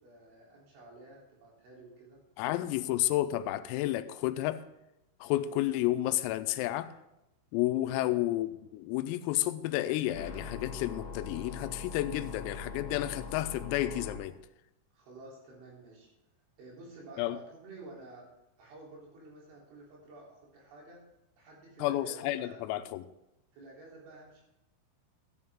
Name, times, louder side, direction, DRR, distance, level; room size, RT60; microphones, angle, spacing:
voice 1, 0.0-2.2 7.9-8.2 14.9-16.1 16.6-18.3 18.6-21.0 21.4-22.6 23.5-24.4, right 2 dB, 65° right, -3 dB, 5.8 m, -51 dB
voice 2, 2.4-4.6 5.2-6.9 7.5-14.4 17.2-17.4 21.8-23.0, left 15 dB, 90° left, 12 dB, 3.4 m, -31 dB
sound 1, 10.1-14.2, left 5 dB, 75° left, 2.0 m, -42 dB
13.0 x 11.0 x 3.6 m, 0.90 s
omnidirectional pair, 6.0 m